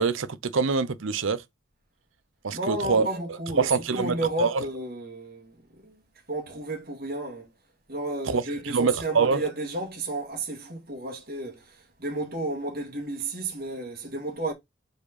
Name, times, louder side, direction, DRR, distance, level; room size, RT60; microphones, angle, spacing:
voice 1, 0.0-1.4 2.4-3.1 3.6-4.6 8.3-9.4, right 5 dB, 75° right, 0.6 m, -25 dB
voice 2, 2.5-5.6 5.8-6.0 6.3-7.5 7.9-14.5, right 2 dB, 50° right, 2.2 m, -32 dB
4.9 x 4.7 x 4.2 m
head